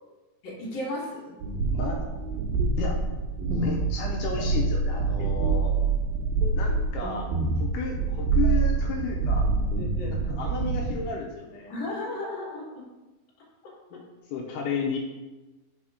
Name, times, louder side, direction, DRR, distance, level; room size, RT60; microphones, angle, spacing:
voice 1, 0.4-1.4 9.8-10.3 11.7-12.9, left 1 dB, 50° left, -4 dB, 2.1 m, -35 dB
sound 1, 1.4-11.0, right 4 dB, 75° right, 2.4 m, -26 dB
voice 2, 1.7-2.1 2.8-3.0 3.5-5.7 6.6-7.3 7.6-9.5 10.1-11.7 13.9-14.0 14.3-15.0, left 5 dB, 90° left, 0 dB, 1.8 m, -33 dB
5.2 x 4.3 x 4.8 m, 1.1 s
omnidirectional pair, 4.5 m